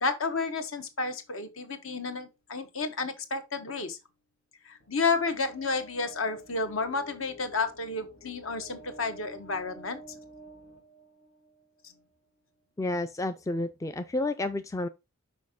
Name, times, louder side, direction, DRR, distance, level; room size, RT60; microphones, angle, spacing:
voice 1, 0.0-4.0 4.6-10.0, left 4 dB, 70° left, 1.2 m, -31 dB
sound 1, 4.8-11.7, right 1 dB, 50° left, 1.4 m, -51 dB
voice 2, 12.8-14.9, left 2 dB, 15° left, 0.3 m, -30 dB
6.2 x 4.8 x 3.6 m
head